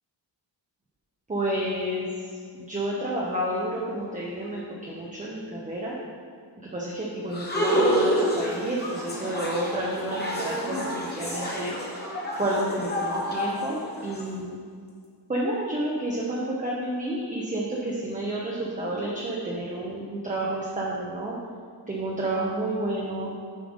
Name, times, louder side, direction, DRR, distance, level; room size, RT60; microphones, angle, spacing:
voice 1, 1.3-2.3 2.5-6.0 6.6-11.7 12.3-14.6 15.3-21.3 21.9-23.3, right 1 dB, 15° right, -4 dB, 0.8 m, -30 dB
sound 1, 7.3-14.2, equal, 20° left, 1.3 m, -28 dB
7.4 x 5.6 x 5.0 m, 2.1 s
wide cardioid pair, 170°, 44 cm